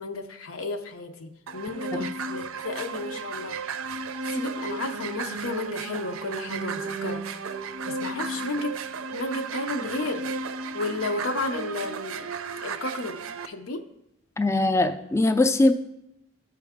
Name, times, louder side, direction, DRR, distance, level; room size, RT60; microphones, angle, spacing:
voice 1, 0.0-3.6 4.3-7.2 7.9-8.7 9.1-10.3 10.7-12.3 12.6-13.2 13.4-13.9, left 2 dB, 85° left, 6 dB, 0.7 m, -32 dB
sound 1, 1.5-13.5, right 4 dB, 85° right, 0.5 m, -34 dB
voice 2, 14.4-15.7, left 2 dB, 15° left, 9 dB, 0.3 m, -21 dB
12.5 x 4.6 x 3.6 m, 0.84 s
head